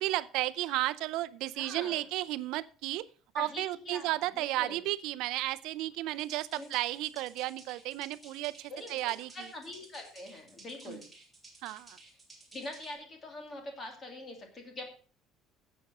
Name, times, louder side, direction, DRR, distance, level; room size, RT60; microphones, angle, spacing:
voice 1, 0.0-3.1 3.3-9.5 10.9-11.0 11.6-12.0, right 16 dB, 65° right, 16 dB, 0.6 m, -33 dB
voice 2, 1.5-2.1 3.4-4.8 6.5-6.7 8.7-11.1 12.5-14.9, left 2 dB, 20° left, 4 dB, 2.5 m, -44 dB
sound 1, 6.1-12.9, right 2 dB, 5° right, 2.6 m, -55 dB
11.0 x 7.7 x 6.1 m, 0.41 s
cardioid pair, 180°, 0 cm